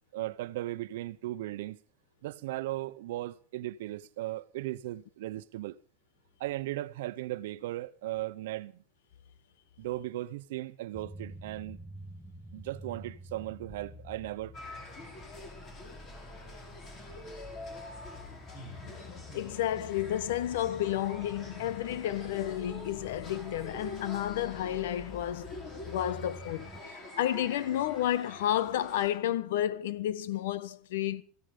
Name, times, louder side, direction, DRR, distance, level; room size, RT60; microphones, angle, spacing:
voice 1, 0.1-1.8 2.2-5.8 6.4-8.7 9.8-11.8 12.5-14.5, right 16 dB, 75° right, 0.8 m, -37 dB
sound 1, 10.9-26.8, left 1 dB, ahead, 1.3 m, -48 dB
sound 2, 14.5-29.1, left 2 dB, 25° left, 5.4 m, -46 dB
voice 2, 19.3-25.6 25.8-31.2, left 12 dB, 80° left, 1.1 m, -31 dB
15.5 x 14.0 x 5.1 m
supercardioid pair, 160°, 0 cm